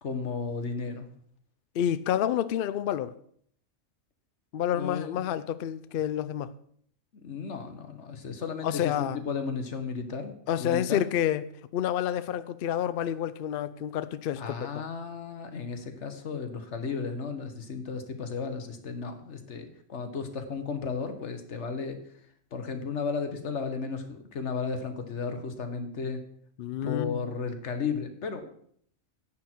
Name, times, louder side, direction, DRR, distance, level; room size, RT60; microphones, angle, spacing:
voice 1, 0.0-1.1 4.7-5.2 7.2-11.0 14.4-22.0 22.5-26.2 26.8-28.5, left 5 dB, 55° left, 7 dB, 1.5 m, -34 dB
voice 2, 1.7-3.1 4.5-6.5 8.6-9.2 10.5-14.6 26.6-27.2, left 10 dB, 75° left, 15 dB, 0.5 m, -29 dB
10.5 x 8.7 x 4.5 m, 0.63 s
omnidirectional pair, 1.5 m